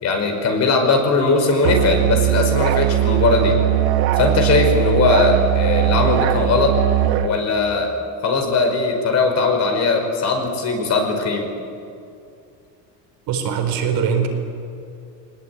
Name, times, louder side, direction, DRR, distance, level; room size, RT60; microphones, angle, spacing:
voice 1, 0.0-3.6 4.1-6.7 7.2-7.9 8.2-11.5, left 3 dB, 40° left, 3 dB, 5.2 m, -19 dB
Musical instrument, 1.6-7.3, right 14 dB, 75° right, 1.5 m, -19 dB
voice 2, 13.3-14.3, right 7 dB, 60° right, 4 dB, 4.4 m, -21 dB
22.5 x 19.5 x 9.8 m, 2.5 s
cardioid pair, 135°, 40 cm